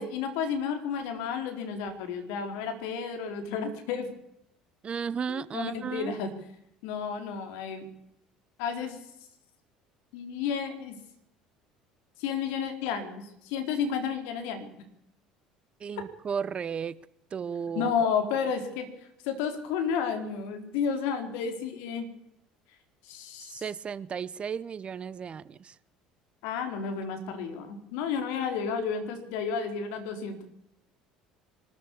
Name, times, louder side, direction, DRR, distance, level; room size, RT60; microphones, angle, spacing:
voice 1, 0.0-4.1 5.3-6.3 6.8-7.8 8.6-9.0 10.1-11.0 12.2-14.7 16.0-16.1 17.7-18.9 19.2-22.1 23.0-23.7 26.4-30.4, left 6 dB, 60° left, 4.1 m, -31 dB
voice 2, 4.8-6.1 15.8-16.9 17.3-17.9 23.5-25.7, right 7 dB, 30° right, 0.7 m, -34 dB
23.5 x 13.5 x 8.5 m
figure-of-eight pair, 60°, 3 cm